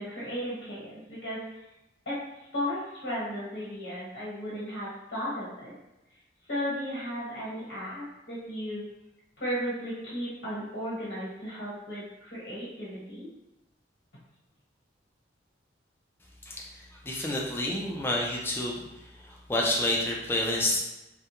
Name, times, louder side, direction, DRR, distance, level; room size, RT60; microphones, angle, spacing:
voice 1, 0.0-1.4 2.1-2.2 2.5-5.7 6.5-8.8 9.4-13.3, equal, 80° left, -7 dB, 1.0 m, -35 dB
voice 2, 17.0-18.8 19.2-20.8, left 1 dB, 10° left, -2 dB, 0.3 m, -28 dB
2.3 x 2.1 x 2.8 m, 0.94 s
head